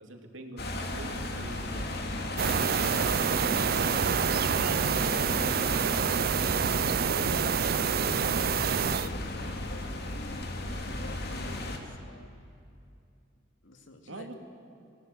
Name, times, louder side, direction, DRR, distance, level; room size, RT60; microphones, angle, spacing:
voice 1, 0.0-2.1 8.6-8.9 14.0-14.3, right 2 dB, 80° right, 4 dB, 2.7 m, -45 dB
sound 1, 0.6-11.8, left 1 dB, 55° left, 2.6 m, -35 dB
Piano, 1.7-13.0, equal, 15° right, 2.1 m, -50 dB
sound 2, 2.4-9.1, right 7 dB, 50° right, 0.5 m, -27 dB
voice 2, 3.6-6.9 8.2-12.3 13.6-14.3, left 1 dB, 75° left, 5 dB, 2.4 m, -47 dB
25.5 x 18.5 x 9.5 m, 2.6 s
head